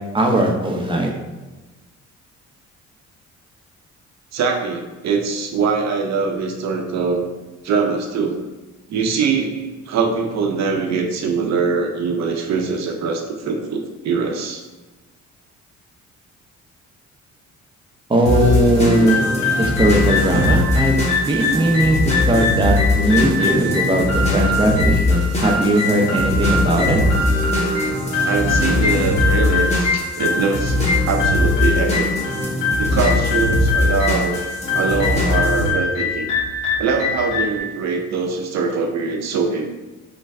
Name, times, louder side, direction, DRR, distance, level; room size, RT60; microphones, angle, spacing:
voice 1, 0.1-1.1 18.1-19.3 19.6-24.1 24.3-27.0, right 1 dB, 15° right, 1 dB, 0.6 m, -18 dB
voice 2, 4.3-7.2 7.6-8.4 8.9-14.6 28.2-30.8 31.1-32.1 32.8-34.4 34.7-36.3 36.8-39.7, right 5 dB, 60° right, 2 dB, 0.5 m, -22 dB
sound 1, 18.3-35.7, left 2 dB, 20° left, 1.0 m, -21 dB
sound 2, 18.9-37.6, left 4 dB, 90° left, 0.9 m, -24 dB
3.2 x 2.1 x 3.6 m, 1.2 s
cardioid pair, 90°, 30 cm